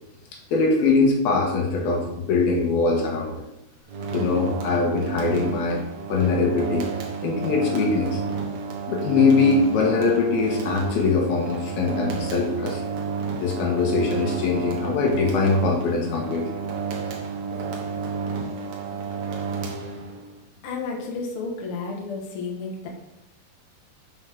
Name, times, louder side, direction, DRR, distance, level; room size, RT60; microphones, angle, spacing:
voice 1, 0.5-3.4 4.1-5.8 6.1-6.9 7.2-8.2 8.9-12.8 13.4-16.5, left 4 dB, 70° left, 0 dB, 3.2 m, -22 dB
sound 1, 3.9-20.4, right 5 dB, 60° right, 2.1 m, -31 dB
voice 2, 20.6-22.9, left 4 dB, 55° left, 0 dB, 1.6 m, -31 dB
11.0 x 6.7 x 3.7 m, 0.88 s
omnidirectional pair, 4.7 m